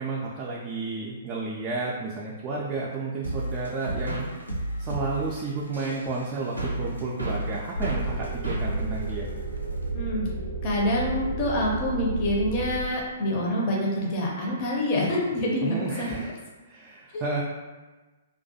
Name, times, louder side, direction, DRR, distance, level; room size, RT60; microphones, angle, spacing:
voice 1, 0.0-4.3 4.8-9.3 15.6-16.3 16.7-17.4, right 3 dB, 25° right, -4 dB, 0.3 m, -32 dB
sound 1, 3.2-9.9, right 1 dB, 85° right, 0.5 m, -33 dB
sound 2, 7.7-12.8, right 3 dB, 85° left, 0.4 m, -32 dB
voice 2, 9.9-10.3 10.6-16.2 17.1-17.2, left 1 dB, 35° left, -3 dB, 0.5 m, -26 dB
2.2 x 2.2 x 2.6 m, 1.2 s
figure-of-eight pair, 115°, 0 cm